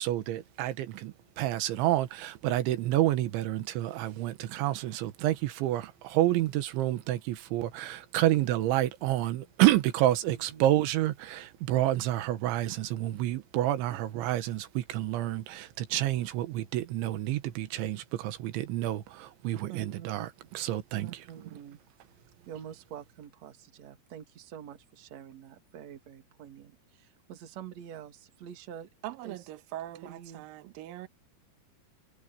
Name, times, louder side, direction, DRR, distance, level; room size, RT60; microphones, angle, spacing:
voice 1, 0.0-21.1, right 14 dB, 90° right, 3.6 m, -29 dB
voice 2, 10.3-10.7 13.9-14.0 19.7-20.5 21.0-21.8 22.5-28.9 29.2-29.4 30.0-30.4, right 9 dB, 50° right, 2.4 m, -46 dB
voice 3, 29.0-31.1, right 13 dB, 70° right, 2.3 m, -41 dB
omnidirectional pair, 5.3 m